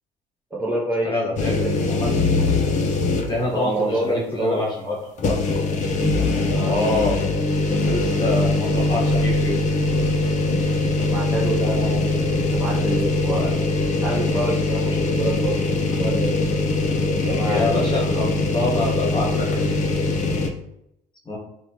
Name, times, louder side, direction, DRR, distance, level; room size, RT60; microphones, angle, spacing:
voice 1, 0.5-1.1 1.5-1.8 3.5-4.6 6.5-6.7 11.0-13.5 14.0-16.5 17.1-17.6, right 1 dB, 10° right, -6 dB, 0.6 m, -27 dB
voice 2, 1.0-2.1 3.3-5.3 6.7-7.2 7.7-9.6 17.4-19.9 21.2-21.4, left 2 dB, 25° left, -4 dB, 1.2 m, -26 dB
sound 1, 1.4-3.5 3.9-4.0 5.2-20.5, left 3 dB, 45° left, 0.4 m, -22 dB
3.0 x 2.2 x 2.9 m, 0.81 s
cardioid pair, 110°, 17 cm